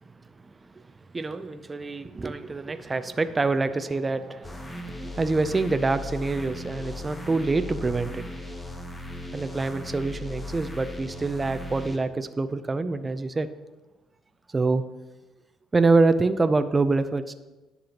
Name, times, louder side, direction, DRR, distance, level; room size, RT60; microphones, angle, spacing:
voice 1, 0.4-0.8 1.1-8.4 9.3-13.5 14.5-14.8 15.7-17.3, right 3 dB, 20° right, 11 dB, 0.4 m, -26 dB
sound 1, 4.4-12.0, left 1 dB, 15° left, 0.9 m, -37 dB
10.5 x 6.8 x 2.9 m, 1.1 s
cardioid pair, 95°, 0 cm